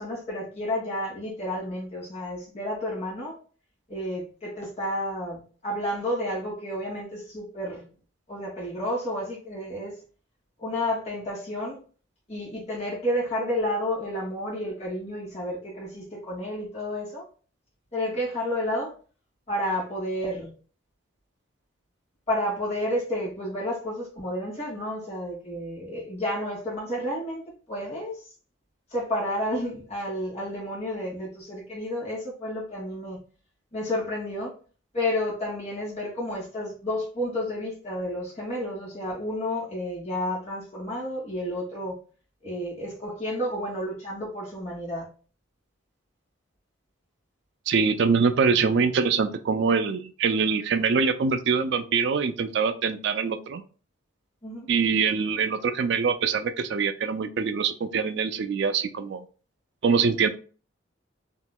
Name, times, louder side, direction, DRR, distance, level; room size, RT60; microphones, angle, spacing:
voice 1, 0.0-3.4 3.9-7.9 8.3-9.9 10.6-11.8 12.3-17.2 17.9-18.9 19.5-20.5 22.3-27.4 27.7-28.2 28.9-33.2 33.7-34.5 34.9-42.0 42.4-45.1 54.4-54.7, left 1 dB, 35° left, 1.4 m, -31 dB
voice 2, 47.7-53.6 54.7-59.2 59.8-60.3, right 5 dB, 60° right, 0.3 m, -24 dB
3.7 x 2.9 x 2.2 m
head